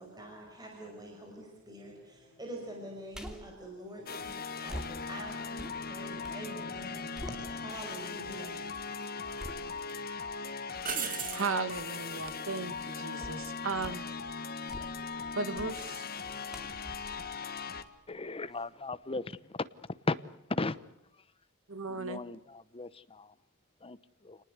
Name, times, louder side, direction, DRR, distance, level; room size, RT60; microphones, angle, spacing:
voice 1, 0.0-8.8, right 1 dB, 20° right, 1 dB, 5.6 m, -46 dB
sound 1, 3.1-3.6 4.7-6.5 6.8-7.9 8.4-8.5 9.4-10.0 10.9-11.2 13.2-13.5 13.8-14.1 14.5-15.2 15.5-15.8 16.5-18.2 18.6-18.7, equal, 5° right, 2.8 m, -46 dB
sound 2, 4.1-17.8, left 5 dB, 45° left, 1.5 m, -39 dB
sound 3, 7.5-7.6 8.7-9.4 9.8-9.9 10.8-11.5 14.6-15.0, right 8 dB, 40° right, 1.9 m, -37 dB
voice 2, 11.3-14.0 15.3-16.1 21.7-22.2, right 4 dB, 65° right, 11 dB, 1.8 m, -35 dB
voice 3, 18.1-19.2 20.1-20.2 20.6-20.8 22.0-22.4 22.7-22.9 23.8-24.0, left 2 dB, 25° left, 15 dB, 0.9 m, -34 dB
28.5 x 19.5 x 8.2 m, 0.82 s
head